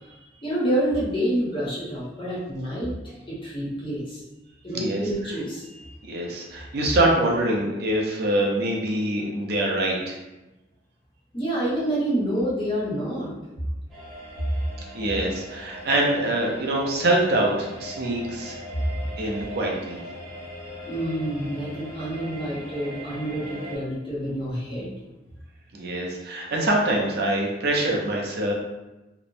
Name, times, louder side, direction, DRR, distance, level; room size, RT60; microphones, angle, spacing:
voice 1, 0.4-4.2 4.6-5.6 11.3-13.3 20.9-24.9, right 1 dB, 25° left, -6 dB, 0.7 m, -28 dB
voice 2, 6.0-10.2 14.9-18.6 19.2-20.0 25.7-28.5, right 1 dB, 55° right, -2 dB, 0.5 m, -24 dB
sound 1, 13.9-23.8, equal, ahead, 0.9 m, -40 dB
3.0 x 2.0 x 2.5 m, 1.0 s
head